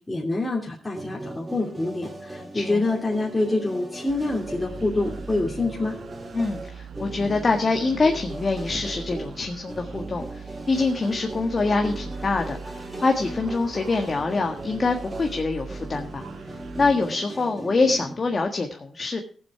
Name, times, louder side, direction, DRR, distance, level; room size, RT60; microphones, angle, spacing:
voice 1, 0.1-6.0, left 2 dB, 20° left, -2 dB, 2.7 m, -26 dB
sound 1, 0.9-18.4, right 1 dB, 20° right, 4.0 m, -38 dB
sound 2, 4.1-16.9, right 5 dB, 80° right, 1.5 m, -41 dB
voice 2, 6.3-12.6 13.0-16.2 16.8-19.2, left 3 dB, 40° left, 3 dB, 1.5 m, -25 dB
15.5 x 7.5 x 4.8 m, 0.42 s
cardioid pair, 75°, 0 cm